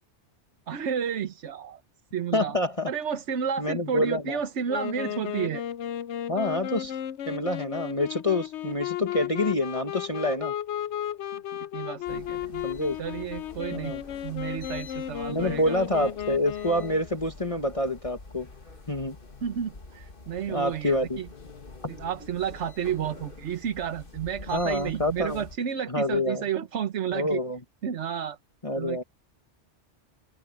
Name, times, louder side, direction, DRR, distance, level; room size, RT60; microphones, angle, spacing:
voice 1, 0.7-1.8 2.1-2.6 2.9-5.6 11.3-11.4 11.7-12.7 13.0-14.0 14.2-15.8 19.4-21.3 21.9-27.4 27.8-28.4 28.8-29.0, right 8 dB, 75° right, 1.3 m, -31 dB
voice 2, 2.3-2.9 3.6-4.4 6.3-7.0 7.2-10.5 12.6-13.0 13.7-14.0 15.3-18.5 18.9-19.2 20.5-21.2 24.5-25.4 25.9-26.4 27.1-27.6 28.6-29.0, left 1 dB, 30° left, 1.7 m, -27 dB
Wind instrument woodwind instrument, 4.7-17.1, left 11 dB, 75° left, 0.9 m, -34 dB
sound 1, 12.0-25.6, left 3 dB, 50° left, 1.9 m, -46 dB
open air
omnidirectional pair, 1.2 m